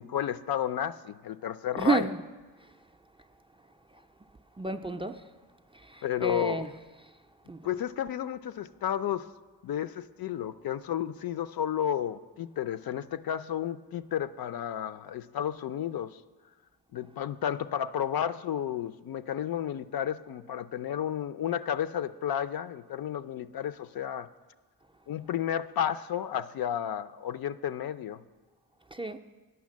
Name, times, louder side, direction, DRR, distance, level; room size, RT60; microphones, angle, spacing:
voice 1, 0.0-2.1 6.0-6.6 7.6-9.3 9.6-16.2 16.9-24.3 25.1-28.2, left 10 dB, 60° left, 0.5 m, -32 dB
voice 2, 1.8-2.2 2.6-2.7 3.9-4.0 4.6-5.3 5.7-6.7 7.0-7.1 7.5-7.7 28.9-29.2, right 3 dB, 15° right, 0.4 m, -31 dB
9.4 x 5.8 x 7.3 m
cardioid pair, 60°, 41 cm